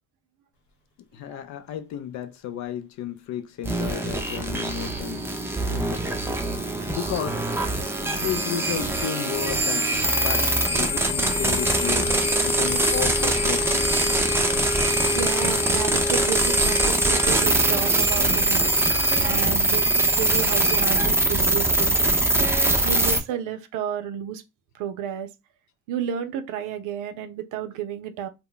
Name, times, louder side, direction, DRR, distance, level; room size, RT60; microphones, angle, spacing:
voice 1, 1.1-5.2 5.7-6.1 6.9-7.5 8.0-14.2, left 10 dB, 55° left, 0.5 m, -33 dB
sound 1, 3.6-23.2, right 1 dB, 5° right, 0.5 m, -23 dB
sound 2, 7.3-19.6, right 1 dB, 70° left, 1.0 m, -33 dB
voice 2, 15.1-22.3 22.6-24.4 24.7-25.3 25.9-28.3, right 9 dB, 60° right, 0.5 m, -32 dB
2.1 x 2.1 x 3.7 m
hypercardioid pair, 65°, 35 cm